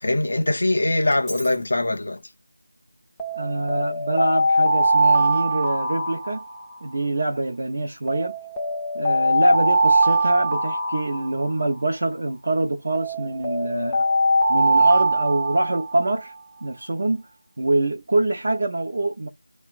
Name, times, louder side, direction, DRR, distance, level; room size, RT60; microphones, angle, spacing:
voice 1, 0.0-2.2, left 2 dB, 55° left, 0.5 m, -22 dB
Alarm, 1.1-1.5 3.2-7.0 8.1-11.8 12.9-16.2, right 1 dB, 5° left, 0.5 m, -22 dB
voice 2, 3.4-6.4 6.8-8.3 8.9-14.1 14.5-16.3 16.6-17.2 17.6-19.3, right 2 dB, 45° right, 0.6 m, -24 dB
2.9 x 2.1 x 2.4 m
figure-of-eight pair, 165°, 0 cm